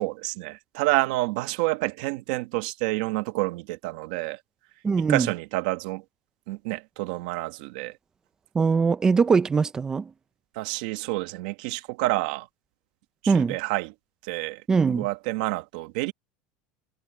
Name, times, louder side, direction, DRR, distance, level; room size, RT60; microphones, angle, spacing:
voice 1, 0.0-4.4 5.1-6.0 6.5-7.9 10.5-12.5 13.2-13.9 14.2-14.6 14.9-16.1, right 20 dB, 70° right, 1.6 m, -28 dB
voice 2, 4.8-5.3 8.5-10.1 13.3-13.6 14.7-15.1, right 5 dB, 15° right, 0.7 m, -21 dB
cardioid pair, 165°, 4 cm